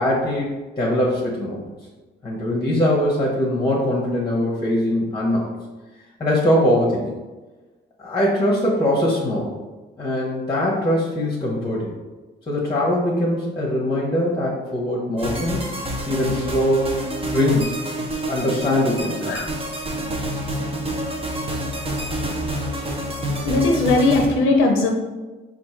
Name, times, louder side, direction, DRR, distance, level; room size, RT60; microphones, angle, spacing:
voice 1, 0.0-1.6 2.2-5.4 6.2-7.1 8.0-9.5 10.0-11.9 12.5-15.6 16.1-16.9 17.3-17.8 18.2-19.4, left 1 dB, 20° left, -3 dB, 1.1 m, -21 dB
sound 1, 15.2-24.3, equal, 30° right, 0.9 m, -28 dB
voice 2, 23.4-24.9, left 3 dB, 85° left, 3 dB, 0.5 m, -18 dB
4.3 x 2.5 x 4.4 m, 1.2 s
cardioid pair, 90°, 20 cm